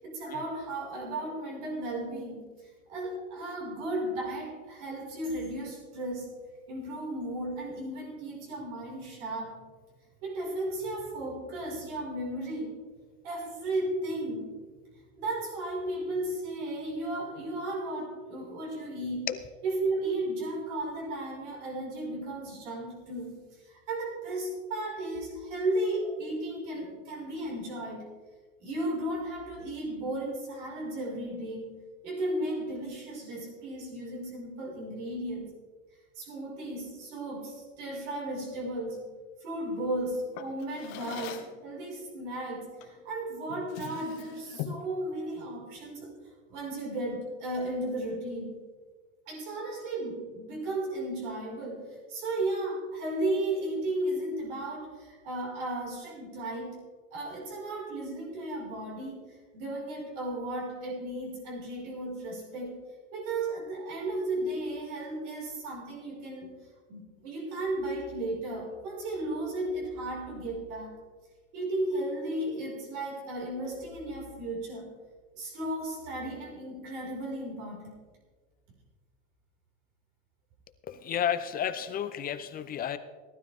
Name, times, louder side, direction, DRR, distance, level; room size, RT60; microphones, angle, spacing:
voice 1, 0.0-2.4 2.9-6.3 6.7-9.6 10.2-12.8 13.2-14.5 15.2-19.3 19.6-23.4 23.6-28.1 28.6-31.7 32.0-35.5 36.1-39.0 39.4-46.1 46.5-48.6 49.3-56.8 57.1-59.2 59.5-62.8 63.1-66.5 66.9-70.9 71.5-74.9 75.4-78.0, right 1 dB, 65° right, -2 dB, 5.1 m, -34 dB
Drawer open or close, 40.3-41.6 42.8-43.0 43.4-44.9, left 10 dB, 60° left, 1.6 m, -41 dB
voice 2, 80.8-83.0, left 9 dB, 25° left, 11 dB, 0.6 m, -32 dB
18.0 x 12.5 x 3.5 m, 1.4 s
supercardioid pair, 135°, 38 cm